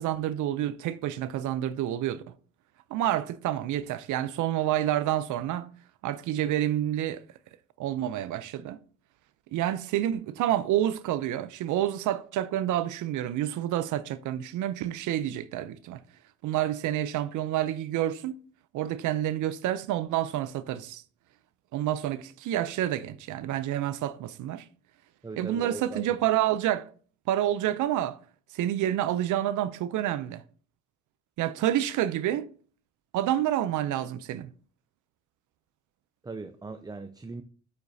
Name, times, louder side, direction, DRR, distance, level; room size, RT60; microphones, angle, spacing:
voice 1, 0.0-2.2 2.9-5.7 6.0-7.2 7.8-8.8 9.5-16.0 16.4-18.4 18.7-21.0 21.7-24.7 25.4-26.9 27.3-28.2 28.5-30.4 31.4-32.5 33.1-34.5, right 12 dB, 80° right, 0.5 m, -28 dB
voice 2, 25.2-26.0 36.2-37.4, right 3 dB, 15° right, 0.4 m, -39 dB
8.8 x 5.1 x 2.7 m
cardioid pair, 90°, 30 cm